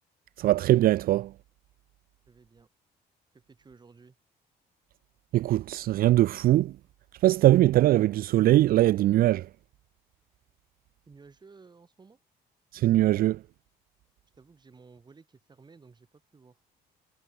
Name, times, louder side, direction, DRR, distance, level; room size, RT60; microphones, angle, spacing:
voice 1, 0.4-1.3 5.3-6.7 7.2-9.4 12.7-13.4, right 15 dB, 60° right, 0.5 m, -21 dB
voice 2, 2.3-2.7 3.3-4.2 11.1-12.2 14.3-16.6, right 4 dB, 25° right, 6.4 m, -55 dB
cardioid pair, 110°, 17 cm